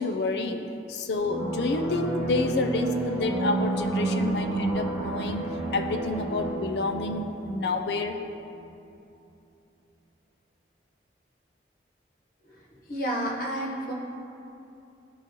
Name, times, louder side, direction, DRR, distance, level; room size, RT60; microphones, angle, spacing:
voice 1, 0.0-5.4 5.7-8.2, left 3 dB, 75° left, 5 dB, 0.5 m, -29 dB
sound 1, 1.1-8.5, right 2 dB, 5° right, 1.4 m, -31 dB
voice 2, 12.9-13.9, equal, 55° left, -3 dB, 1.3 m, -30 dB
13.0 x 4.5 x 3.0 m, 2.7 s
head